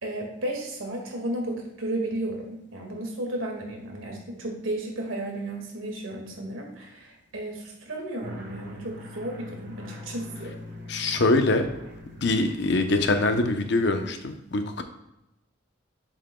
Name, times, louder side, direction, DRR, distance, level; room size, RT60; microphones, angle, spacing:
voice 1, 0.0-10.5, right 1 dB, 85° right, 1 dB, 1.9 m, -33 dB
sound 1, 8.2-13.5, left 2 dB, 50° right, 1.4 m, -43 dB
voice 2, 10.9-11.6 12.2-14.8, left 2 dB, 60° left, 6 dB, 0.8 m, -23 dB
7.7 x 7.2 x 2.2 m, 0.87 s
head